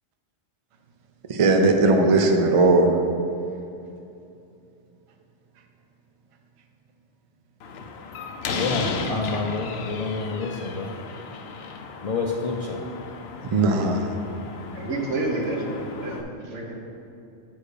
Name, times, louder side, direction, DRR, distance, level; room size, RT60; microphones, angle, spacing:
voice 1, 1.3-2.9 13.5-14.1, right 2 dB, 40° right, 4 dB, 0.5 m, -18 dB
Slam, 7.6-16.2, left 4 dB, 65° left, 0.8 m, -35 dB
voice 2, 8.5-10.9 12.0-12.8, left 3 dB, 50° left, -1 dB, 0.4 m, -28 dB
voice 3, 14.7-16.7, right 2 dB, 80° right, -1 dB, 1.5 m, -29 dB
8.5 x 4.4 x 4.9 m, 2.7 s
omnidirectional pair, 1.2 m